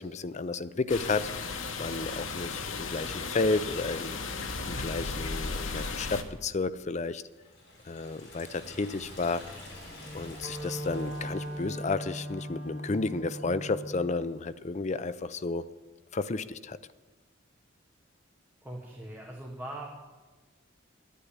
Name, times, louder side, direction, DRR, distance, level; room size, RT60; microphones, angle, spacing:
voice 1, 0.0-1.5 1.8-4.2 4.6-7.2 7.8-9.5 10.1-15.7 16.1-16.8, left 3 dB, 35° left, 14 dB, 0.5 m, -32 dB
sound 1, 0.9-6.2, left 4 dB, 80° left, 1.3 m, -35 dB
Liquid, 7.3-11.9, left 1 dB, 60° left, 6.4 m, -48 dB
Wind instrument woodwind instrument, 9.9-14.1, right 1 dB, 40° right, 2.6 m, -39 dB
voice 2, 18.6-19.9, right 1 dB, 10° right, -2 dB, 1.5 m, -40 dB
11.0 x 10.0 x 9.8 m, 1.3 s
head